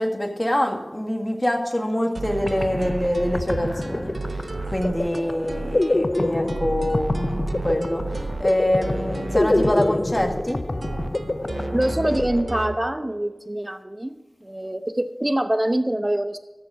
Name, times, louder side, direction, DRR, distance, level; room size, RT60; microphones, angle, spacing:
voice 1, 0.0-4.1 4.7-7.2 7.6-8.0 8.4-10.6, left 1 dB, 20° left, 3 dB, 1.8 m, -25 dB
sound 1, 2.1-12.8, right 3 dB, 80° right, 0.6 m, -33 dB
sound 2, 2.2-2.3 2.5-13.1, left 2 dB, 40° left, 0.6 m, -27 dB
voice 2, 11.7-14.1 14.4-16.4, right 1 dB, 20° right, 9 dB, 0.8 m, -24 dB
13.5 x 6.9 x 4.9 m, 1.1 s
wide cardioid pair, 55°, 0 cm